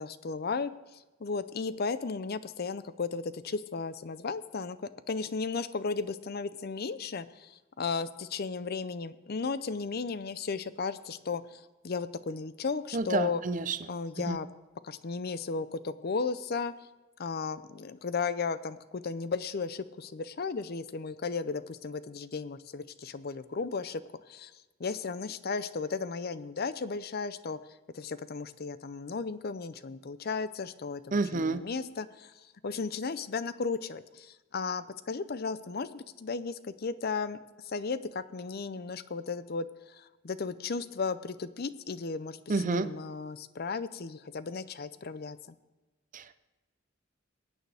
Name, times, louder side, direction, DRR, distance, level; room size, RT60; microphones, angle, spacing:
voice 1, 0.0-4.8 5.1-13.4 13.9-14.5 14.8-16.7 17.2-24.0 24.3-24.5 24.8-27.6 27.9-32.3 32.6-42.4 42.6-45.4, left 4 dB, 50° left, 14 dB, 0.6 m, -35 dB
voice 2, 12.9-13.8 14.3-14.4 31.1-31.6 42.5-42.9 46.1-46.3, right 3 dB, 40° right, 12 dB, 0.6 m, -29 dB
21.5 x 9.1 x 3.5 m, 1.2 s
head